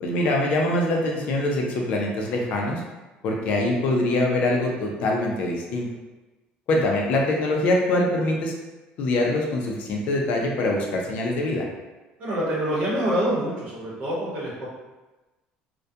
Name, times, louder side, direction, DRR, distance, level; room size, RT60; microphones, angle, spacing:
voice 1, 0.0-2.8 3.2-5.9 6.7-8.5 9.0-11.6, left 1 dB, 50° left, 0 dB, 0.4 m, -24 dB
voice 2, 12.2-14.7, right 1 dB, 45° right, -6 dB, 0.9 m, -26 dB
2.3 x 2.1 x 2.7 m, 1.1 s
cardioid pair, 170°, 3 cm